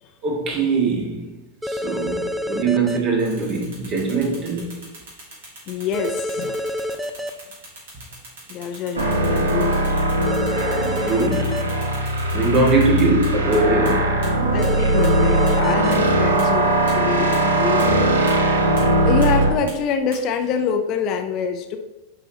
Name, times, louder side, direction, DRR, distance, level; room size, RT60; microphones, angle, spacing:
voice 1, 0.2-1.3 1.6-4.7 10.8-11.6 12.3-14.2, right 3 dB, 35° right, 1.9 m, -21 dB
sound 1, 1.6-3.0 5.9-7.3 10.3-11.6 14.6-15.9, left 1 dB, 5° right, 0.5 m, -27 dB
sound 2, 3.2-13.6 13.9-14.0 14.2-14.3 14.6-14.7 15.0-15.1 15.5-15.6 15.9-16.0 16.4-16.5 16.9-17.0 17.3-17.4 17.8-17.9 18.3-18.4 18.8-18.9 19.2-19.3 19.7-19.8 20.1-20.2, right 2 dB, 60° right, 2.7 m, -40 dB
voice 2, 5.7-6.6 8.5-9.8 14.4-18.2 19.0-21.8, left 6 dB, 35° left, 0.6 m, -26 dB
sound 3, 9.0-19.5, right 1 dB, 75° right, 1.1 m, -20 dB
10.5 x 4.9 x 3.0 m
figure-of-eight pair, 90°, 0 cm